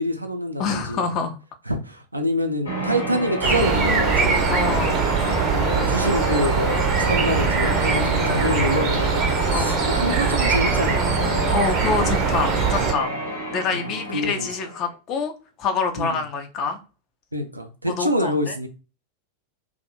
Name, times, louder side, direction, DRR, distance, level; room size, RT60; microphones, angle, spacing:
voice 1, 0.0-1.1 1.7-4.4 5.5-11.2 13.7-14.5 16.0-16.2 17.3-18.7, equal, 85° right, 0.3 m, -26 dB
voice 2, 0.6-1.4 4.5-5.1 7.9-8.7 9.5-9.8 11.5-13.1 13.5-15.3 15.6-16.8 17.9-18.5, left 5 dB, 35° left, 0.5 m, -26 dB
Church bell, 2.6-14.9, equal, 75° left, 1.0 m, -28 dB
sound 1, 3.4-12.9, right 5 dB, 30° right, 0.5 m, -22 dB
2.5 x 2.0 x 2.8 m
figure-of-eight pair, 90°, 0 cm